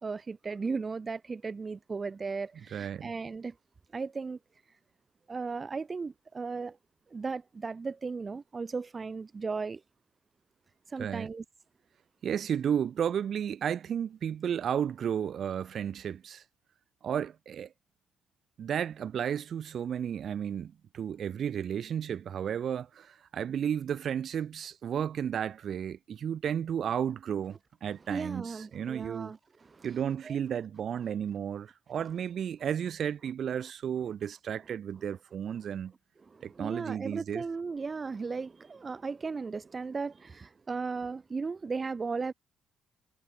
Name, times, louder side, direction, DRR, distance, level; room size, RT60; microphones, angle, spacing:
voice 1, 0.0-3.6 3.9-4.4 5.3-6.8 7.1-9.8 10.9-11.4 28.1-29.9 30.2-30.4 36.3-42.3, right 4 dB, 30° right, 3.9 m, -36 dB
voice 2, 2.7-3.1 11.0-11.3 12.2-16.4 17.0-17.7 18.6-29.3 29.8-35.9 36.4-37.4, right 8 dB, 60° right, 2.8 m, -33 dB
cardioid pair, 90°, 0 cm